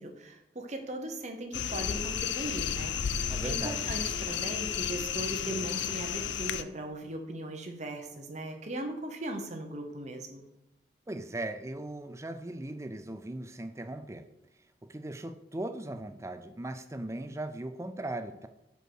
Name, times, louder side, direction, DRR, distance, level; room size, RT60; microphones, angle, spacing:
voice 1, 0.0-3.2 3.4-10.4, right 1 dB, 40° right, 4 dB, 1.0 m, -38 dB
sound 1, 1.5-6.6, left 8 dB, 75° left, 0.4 m, -32 dB
voice 2, 3.3-3.9 11.1-14.3 14.8-18.5, right 1 dB, 15° right, 9 dB, 0.4 m, -38 dB
5.3 x 4.7 x 6.3 m, 0.90 s
head